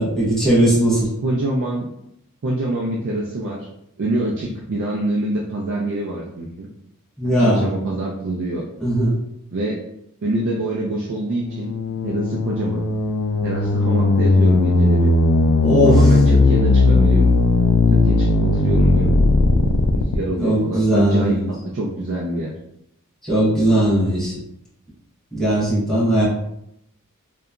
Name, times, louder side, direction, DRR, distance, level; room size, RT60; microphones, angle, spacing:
voice 1, 0.0-1.1 7.2-7.7 8.8-9.2 15.6-16.1 20.4-21.5 23.2-24.3 25.3-26.2, right 1 dB, ahead, -9 dB, 0.9 m, -18 dB
voice 2, 1.2-1.9 2.4-3.7 4.0-6.7 7.2-8.7 9.5-9.8 10.2-11.7 12.0-12.9 13.4-15.1 15.8-17.3 17.9-19.2 19.9-22.5, right 1 dB, 55° right, -3 dB, 0.4 m, -25 dB
sound 1, 11.4-20.2, left 2 dB, 75° left, 0.3 m, -17 dB
2.8 x 2.2 x 2.4 m, 0.77 s
head